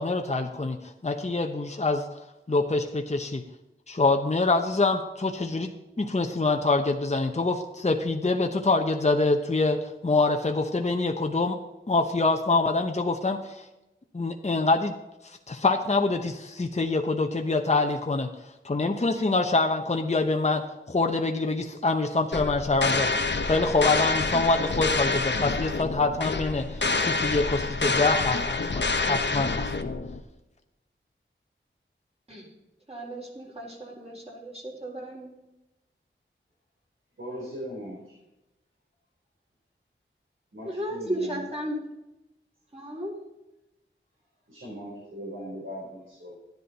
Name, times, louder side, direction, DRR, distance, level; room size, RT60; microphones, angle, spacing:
voice 1, 0.0-2.0 2.5-3.4 3.9-5.7 6.0-11.6 11.9-13.7 14.1-14.9 15.2-18.3 18.6-29.7, left 3 dB, 35° left, 4 dB, 0.9 m, -25 dB
sound 1, 22.3-30.2, left 3 dB, 60° left, 0.9 m, -27 dB
voice 2, 32.9-35.3 40.6-41.8 42.7-43.1, right 1 dB, 30° right, -2 dB, 4.2 m, -34 dB
voice 3, 37.2-38.2 40.5-41.5 44.5-46.4, equal, 75° right, -5 dB, 3.8 m, -39 dB
13.0 x 10.5 x 4.1 m, 0.97 s
wide cardioid pair, 60°, 20 cm